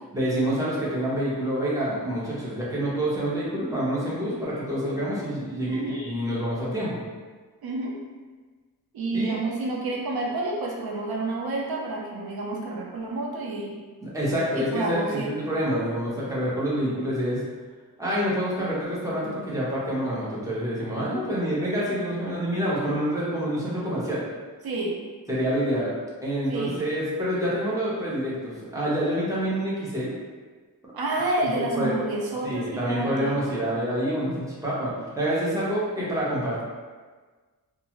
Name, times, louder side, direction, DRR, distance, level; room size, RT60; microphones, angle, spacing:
voice 1, 0.1-7.0 9.1-9.4 14.0-17.4 18.0-24.2 25.3-25.9 26.2-30.1 31.4-31.9 32.4-36.6, equal, 10° right, -8 dB, 0.7 m, -27 dB
voice 2, 5.7-6.0 7.6-7.9 8.9-13.8 14.6-15.3 24.6-25.0 26.5-26.8 30.9-33.4, right 2 dB, 80° right, -2 dB, 0.5 m, -29 dB
2.4 x 2.3 x 2.9 m, 1.4 s
wide cardioid pair, 130°, 37 cm